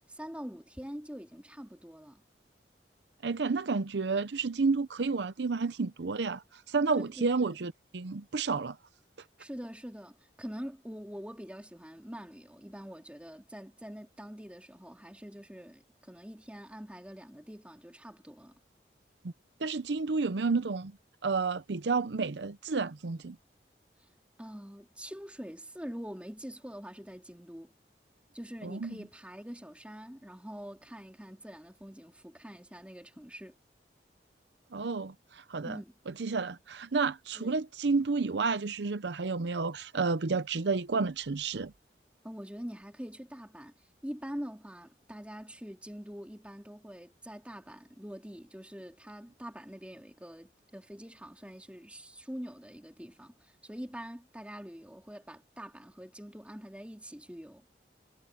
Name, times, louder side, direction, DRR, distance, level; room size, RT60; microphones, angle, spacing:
voice 1, 0.1-2.2 6.9-7.6 9.4-18.5 24.0-24.1 24.4-27.7 28.3-33.5 35.6-35.9 37.4-37.5 42.2-43.7 44.0-57.7, equal, 5° right, 2.8 m, -44 dB
voice 2, 3.2-8.8 19.6-20.9 21.2-23.4 28.6-29.0 34.7-35.8 36.1-41.7, right 4 dB, 80° right, 0.7 m, -31 dB
head